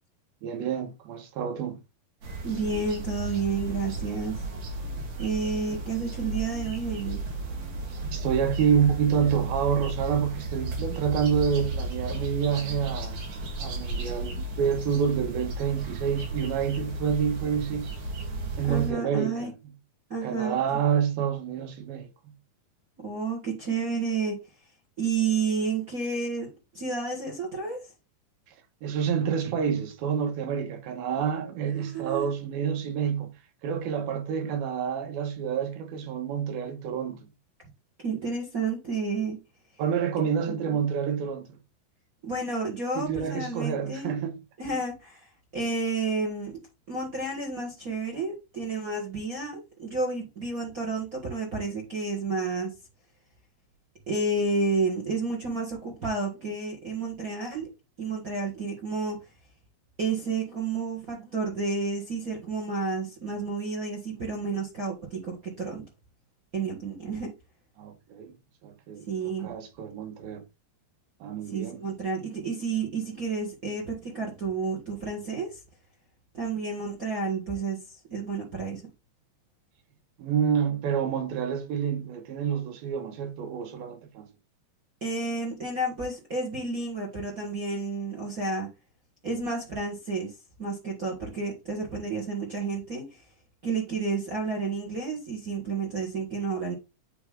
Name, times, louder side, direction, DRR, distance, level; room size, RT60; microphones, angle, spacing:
voice 1, 0.4-1.8 8.1-13.2 13.6-17.9 18.6-19.6 20.2-22.3 28.8-33.3 33.6-37.2 39.8-41.6 43.0-44.4 67.8-68.3 68.6-69.1 69.4-70.4 71.2-71.8 80.2-84.3, right 7 dB, 90° right, 3.0 m, -28 dB
sound 1, 2.2-18.9, right 2 dB, 60° right, 3.1 m, -34 dB
voice 2, 2.4-4.4 5.2-7.2 18.7-19.5 20.1-20.8 23.0-24.4 25.0-27.8 31.7-32.3 38.0-39.4 40.5-40.8 42.2-44.1 44.6-46.6 46.9-52.7 54.1-57.7 58.0-59.2 60.0-65.8 66.5-67.3 69.1-69.5 71.5-75.6 76.3-78.8 85.0-88.7 89.2-93.2 93.6-96.7, right 4 dB, 40° right, 1.2 m, -31 dB
8.9 x 3.4 x 3.5 m
omnidirectional pair, 4.2 m